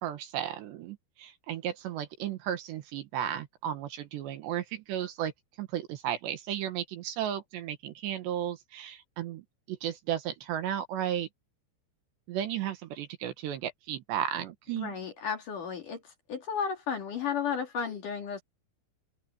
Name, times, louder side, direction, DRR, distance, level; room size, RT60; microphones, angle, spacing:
voice 1, 0.0-5.3 5.6-11.3 12.3-15.0, right 10 dB, 70° right, 3.3 m, -34 dB
voice 2, 14.7-16.0 16.3-18.4, left 7 dB, 50° left, 3.3 m, -33 dB
omnidirectional pair, 5.6 m